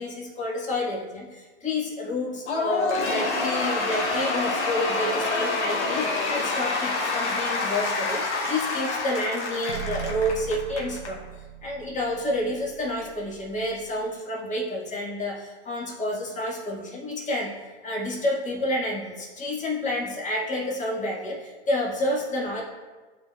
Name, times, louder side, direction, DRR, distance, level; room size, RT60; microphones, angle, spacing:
voice 1, 0.0-11.2 11.6-17.5 17.8-22.6, left 1 dB, 20° left, -3 dB, 1.8 m, -29 dB
Cheering / Applause / Crowd, 2.5-11.1, left 3 dB, 85° left, 1.4 m, -27 dB
sound 1, 9.7-13.9, right 9 dB, 85° right, 0.7 m, -40 dB
11.0 x 4.2 x 2.4 m, 1.3 s
hypercardioid pair, 95°, 34 cm